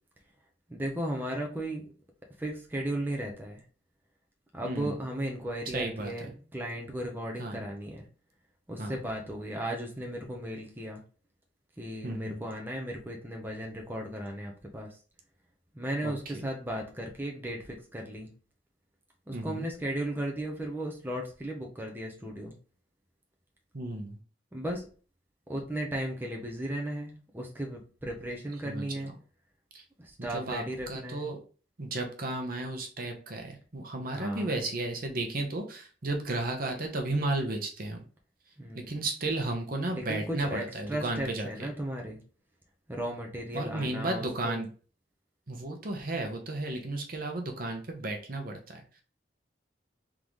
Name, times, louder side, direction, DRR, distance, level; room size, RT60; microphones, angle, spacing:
voice 1, 0.7-1.8 2.4-3.6 4.5-8.0 8.7-11.0 11.8-15.0 15.7-18.3 19.3-22.5 24.5-24.9 25.5-29.1 30.0-31.2 34.1-34.5 38.6-38.9 39.9-42.2 42.9-44.6, right 1 dB, 10° right, 0 dB, 0.7 m, -36 dB
voice 2, 4.6-4.9 5.7-6.1 7.4-7.6 8.8-9.0 12.0-12.4 16.0-16.1 16.4-16.5 19.3-19.7 23.7-24.2 28.6-28.9 29.7-29.8 30.2-31.4 31.8-38.0 38.7-41.7 43.5-44.7 45.5-49.0, right 2 dB, 50° right, 3 dB, 0.9 m, -33 dB
3.8 x 3.6 x 3.1 m, 0.38 s
head